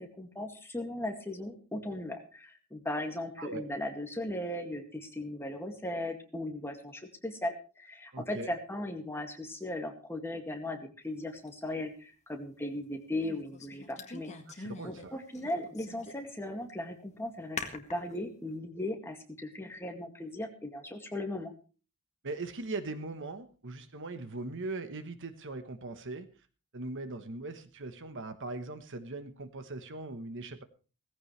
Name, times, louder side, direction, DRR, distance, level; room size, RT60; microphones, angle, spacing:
voice 1, 0.0-10.8 11.0-21.5, left 1 dB, 10° left, 3 dB, 2.1 m, -37 dB
voice 2, 8.1-8.5 14.5-15.2 22.2-26.3 26.7-30.6, right 3 dB, 55° right, 10 dB, 1.2 m, -40 dB
sound 1, 11.5-11.6 13.2-15.0 15.3-16.3 16.7-16.8 17.6-18.2, left 4 dB, 30° left, 1.7 m, -42 dB
17.5 x 15.5 x 3.3 m, 0.36 s
head